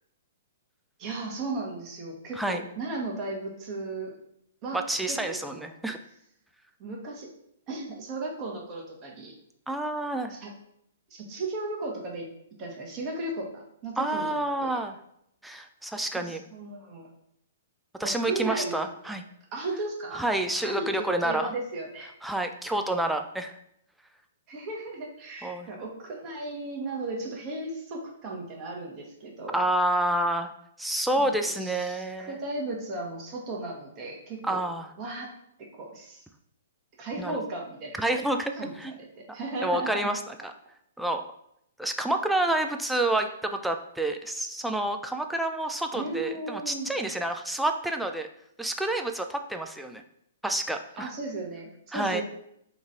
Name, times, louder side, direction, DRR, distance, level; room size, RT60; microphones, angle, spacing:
voice 1, 1.0-4.1 4.6-4.8 5.1-5.7 6.8-7.3 7.7-9.3 10.3-10.5 11.1-12.3 12.6-14.3 14.6-14.8 16.1-17.1 18.0-19.1 19.5-20.2 20.6-22.1 24.5-29.6 31.2-34.6 35.0-35.3 35.7-36.2 37.0-38.2 38.6-38.8 39.1-40.1 45.9-46.9 51.0-52.2, right 2 dB, 30° right, 0 dB, 0.9 m, -35 dB
voice 2, 4.7-6.0 9.7-10.4 14.0-15.0 15.4-16.4 18.0-19.3 20.1-21.5 22.2-23.6 25.4-25.7 29.5-30.5 30.8-32.4 34.4-34.9 37.2-37.4 38.0-38.9 39.6-40.5 41.0-41.3 41.8-48.3 48.6-50.0 50.4-51.1 51.9-52.2, right 1 dB, 5° right, 5 dB, 0.3 m, -28 dB
3.0 x 2.4 x 4.0 m, 0.74 s
figure-of-eight pair, 120°, 0 cm